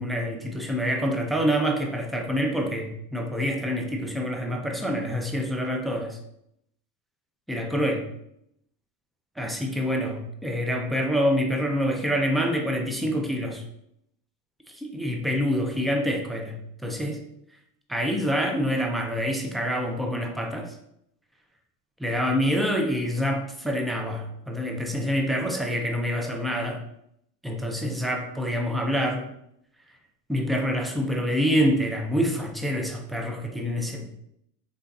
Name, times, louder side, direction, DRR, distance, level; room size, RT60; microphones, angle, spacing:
voice 1, 0.0-6.2 7.5-8.0 9.4-13.6 14.7-17.2 17.9-20.7 22.0-26.8 27.4-29.3 30.3-34.1, equal, ahead, 2 dB, 0.3 m, -26 dB
4.1 x 3.3 x 2.6 m, 0.75 s
supercardioid pair, 100°, 49 cm